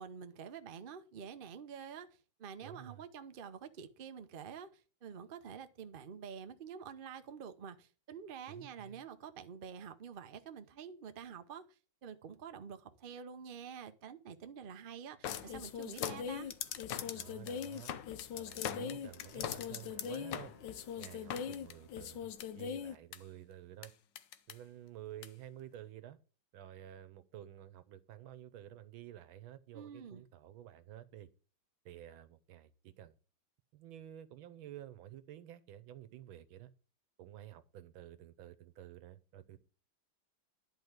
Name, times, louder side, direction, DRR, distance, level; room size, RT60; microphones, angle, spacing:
voice 1, 0.0-2.1 2.4-16.5 29.7-30.2, right 7 dB, 60° right, 0.5 m, -48 dB
voice 2, 2.6-3.0 8.5-9.0 17.1-17.9 18.3-20.5 21.0-23.9 24.5-26.2 26.5-31.3 31.8-33.1 33.7-36.7 37.2-39.6, right 12 dB, 80° right, 1.7 m, -51 dB
sound 1, 15.2-23.2 23.8-23.9 24.2-24.5 25.2-25.3, left 8 dB, 70° left, 1.4 m, -40 dB
Wind instrument woodwind instrument, 19.0-22.2, left 1 dB, 20° left, 1.5 m, -62 dB
11.0 x 4.7 x 8.0 m
omnidirectional pair, 2.2 m